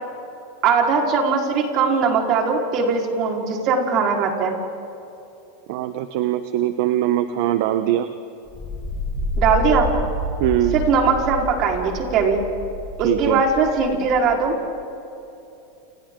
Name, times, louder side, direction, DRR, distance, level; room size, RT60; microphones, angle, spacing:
voice 1, 0.6-4.6 9.4-9.9 10.7-12.4 13.0-14.6, right 5 dB, 45° right, 0 dB, 4.4 m, -20 dB
voice 2, 5.7-8.1 10.4-10.7 13.0-13.4, right 12 dB, 65° right, 10 dB, 1.0 m, -21 dB
sound 1, 8.5-14.5, equal, 10° left, 7.4 m, -29 dB
29.5 x 29.5 x 3.9 m, 2.9 s
supercardioid pair, 125°, 0 cm